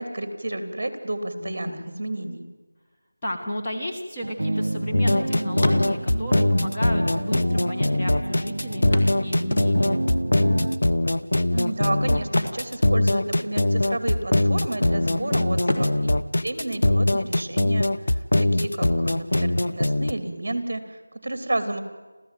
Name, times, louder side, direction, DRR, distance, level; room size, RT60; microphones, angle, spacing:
voice 1, 0.0-2.4 11.5-16.1 16.4-21.8, right 1 dB, 40° right, 9 dB, 3.0 m, -31 dB
voice 2, 1.4-1.8 3.2-10.0 15.0-15.5, left 1 dB, 15° left, -3 dB, 1.4 m, -33 dB
sound 1, 3.9-5.2 5.5-6.3 7.3-7.4 7.6-7.7 8.9-10.1 12.2-13.5 13.7-14.0 14.5-15.1 15.6-17.3 19.3-19.4 19.9-20.0, left 1 dB, 40° left, 2.2 m, -31 dB
sound 2, 4.2-10.8, right 1 dB, 70° right, 1.1 m, -29 dB
sound 3, 4.9-20.1, left 1 dB, 55° left, 1.0 m, -22 dB
29.0 x 14.0 x 9.2 m, 1.3 s
figure-of-eight pair, 180°, 0 cm